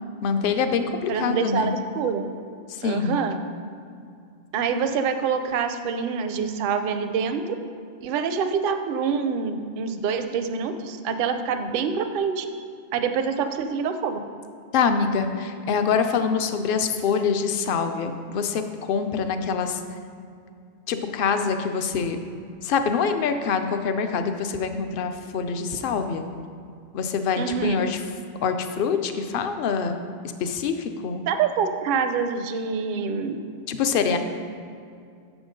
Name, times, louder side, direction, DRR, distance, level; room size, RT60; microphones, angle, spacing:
voice 1, 0.2-1.7 2.7-3.2 14.7-19.8 20.9-22.2 22.6-26.3 26.9-28.0 28.4-30.0 30.4-31.2 33.7-34.2, left 6 dB, 60° left, 8 dB, 0.7 m, -25 dB
voice 2, 1.1-2.3 2.8-3.4 4.5-7.6 8.0-12.5 12.9-14.2 27.4-27.8 31.3-33.4 34.0-34.2, right 6 dB, 60° right, 8 dB, 0.6 m, -26 dB
6.9 x 6.1 x 5.2 m, 2.3 s
omnidirectional pair, 1.2 m